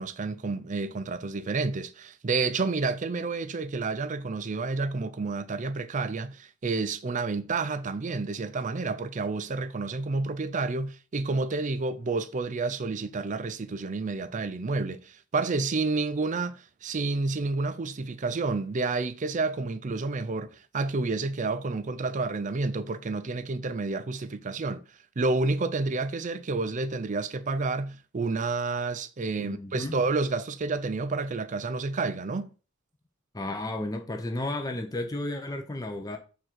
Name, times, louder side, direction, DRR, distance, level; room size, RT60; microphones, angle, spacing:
voice 1, 0.0-24.8 25.2-32.5, right 3 dB, 35° right, 0.5 m, -30 dB
voice 2, 29.3-30.0 33.3-36.2, left 1 dB, 20° left, 0.6 m, -33 dB
6.4 x 3.7 x 4.5 m
head